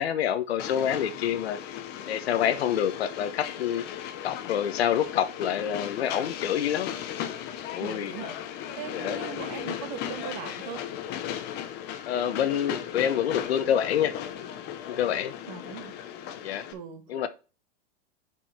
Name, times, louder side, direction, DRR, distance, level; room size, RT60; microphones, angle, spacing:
voice 1, 0.0-1.6 2.1-3.8 4.2-6.9 7.7-8.1 8.9-9.2 12.0-14.1 14.9-15.3 16.4-16.7 17.1-17.3, left 9 dB, 85° left, 1.1 m, -27 dB
Train, 0.6-16.7, left 10 dB, 35° left, 0.8 m, -37 dB
voice 2, 7.8-10.8 15.4-15.9 16.7-17.3, right 9 dB, 50° right, 1.4 m, -40 dB
5.5 x 5.4 x 4.2 m
supercardioid pair, 145°, 31 cm